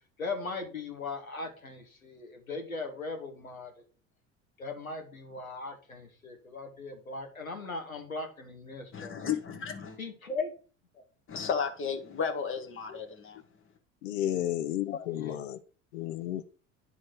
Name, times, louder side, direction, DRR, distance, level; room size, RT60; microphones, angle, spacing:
voice 1, 0.2-3.7 4.6-9.3 10.0-10.5 15.1-15.4, left 3 dB, 85° left, 1.6 m, -38 dB
voice 2, 8.9-10.0 11.3-13.4, left 6 dB, 30° left, 1.6 m, -33 dB
voice 3, 14.0-15.6 15.9-16.4, left 12 dB, 65° left, 0.7 m, -32 dB
10.0 x 4.2 x 4.7 m
figure-of-eight pair, 70°, 41 cm